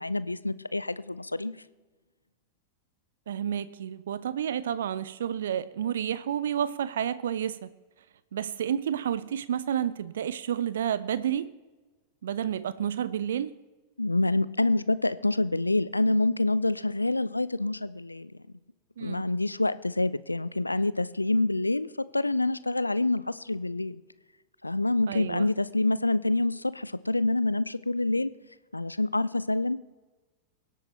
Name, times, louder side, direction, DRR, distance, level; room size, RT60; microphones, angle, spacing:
voice 1, 0.0-1.6 14.0-18.3 19.0-24.0 24.6-28.3 28.7-29.9, left 2 dB, 85° left, 17 dB, 0.4 m, -27 dB
voice 2, 3.3-7.7 8.3-11.5 12.2-13.5 19.0-19.2 25.1-25.5, right 9 dB, 60° right, 16 dB, 0.4 m, -30 dB
24.0 x 8.3 x 3.3 m, 1.2 s
figure-of-eight pair, 90°, 0 cm